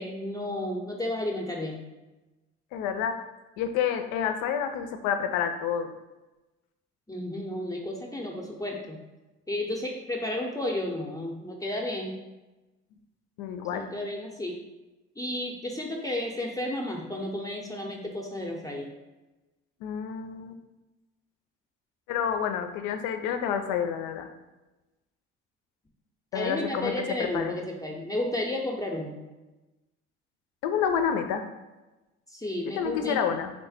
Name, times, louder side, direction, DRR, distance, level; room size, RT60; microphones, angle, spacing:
voice 1, 0.0-1.8 7.1-9.0 9.5-12.2 13.7-14.6 15.2-18.9 26.3-29.2 32.3-33.2, left 1 dB, 10° left, 0 dB, 0.6 m, -32 dB
voice 2, 2.7-3.2 3.6-5.9 13.4-13.9 19.8-20.6 22.1-24.3 26.3-27.5 30.6-31.4 32.8-33.5, left 8 dB, 70° left, 8 dB, 0.5 m, -29 dB
3.2 x 2.1 x 4.1 m, 1.1 s
hypercardioid pair, 55°, 32 cm